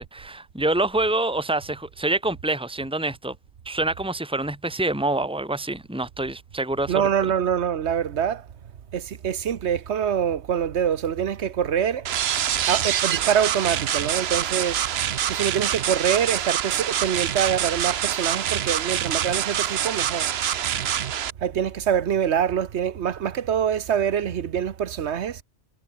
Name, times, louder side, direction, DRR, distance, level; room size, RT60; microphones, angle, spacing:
voice 1, 0.0-3.3 3.7-7.1, right 2 dB, 5° right, 2.3 m, -26 dB
voice 2, 6.9-8.5 8.9-12.1 12.7-14.8 15.3-20.3 21.4-25.4, right 8 dB, 90° right, 1.2 m, -25 dB
sound 1, 12.1-21.3, right 10 dB, 70° right, 1.0 m, -25 dB
omnidirectional pair, 1.1 m